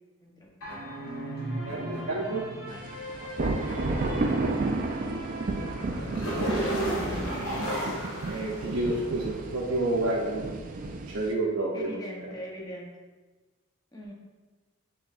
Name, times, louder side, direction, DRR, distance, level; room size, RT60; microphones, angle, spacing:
sound 1, 0.6-9.3, equal, 80° left, 1.4 m, -35 dB
voice 1, 1.6-2.5 5.6-5.7 8.3-10.6 11.1-12.3, right 2 dB, 75° right, -4 dB, 0.6 m, -30 dB
sound 2, 2.8-11.3, right 3 dB, 40° right, 0.3 m, -32 dB
voice 2, 3.7-4.3 11.7-12.9 13.9-14.1, equal, 15° left, -2 dB, 0.7 m, -41 dB
6.9 x 3.1 x 2.4 m, 1.2 s
head